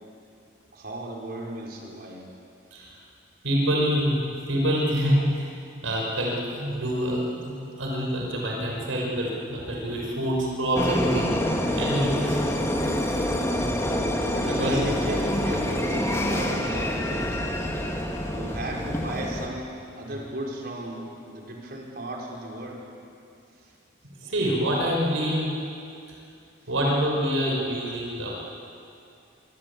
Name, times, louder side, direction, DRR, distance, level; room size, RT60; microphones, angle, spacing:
voice 1, 0.7-2.3 14.2-17.5 18.3-22.8, right 1 dB, 50° right, -1 dB, 5.0 m, -35 dB
voice 2, 3.4-5.5 5.8-11.3 11.7-12.4 14.5-14.8 20.1-20.2 24.2-25.5 26.7-28.3, equal, 85° right, -1 dB, 5.9 m, -26 dB
sound 1, 10.8-19.5, left 1 dB, 15° left, 2.1 m, -26 dB
25.0 x 24.0 x 8.6 m, 2.6 s
head